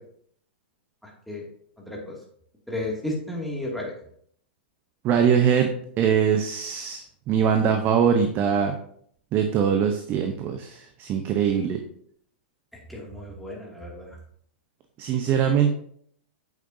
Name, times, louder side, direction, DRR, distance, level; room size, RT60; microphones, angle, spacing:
voice 1, 1.0-1.4 1.8-2.2 2.7-3.9 12.9-14.1, left 1 dB, ahead, -3 dB, 2.4 m, -33 dB
voice 2, 5.0-8.8 9.3-11.8 15.0-15.7, right 7 dB, 35° right, 6 dB, 0.8 m, -22 dB
8.5 x 6.6 x 2.7 m, 0.64 s
hypercardioid pair, 120°, 6 cm